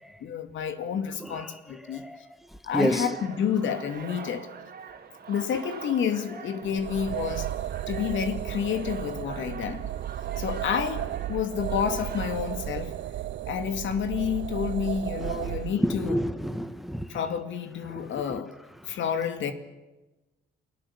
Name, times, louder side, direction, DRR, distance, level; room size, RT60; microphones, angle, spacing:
voice 1, 0.2-2.0 2.6-4.5 5.3-7.5 7.9-9.9 10.4-11.0 11.3-12.9 13.5-16.2 17.1-18.5 18.9-19.5, left 8 dB, 75° left, 2.3 m, -29 dB
voice 2, 1.2-2.2 2.5-3.2 4.2-4.3 15.2-17.2 17.8-18.4 18.9-19.0, equal, ahead, 1.5 m, -31 dB
sound 1, 2.8-13.3, right 6 dB, 50° right, 2.7 m, -44 dB
sound 2, 6.6-15.8, right 12 dB, 70° right, 0.7 m, -34 dB
29.0 x 18.0 x 7.3 m
cardioid pair, 90°, 20 cm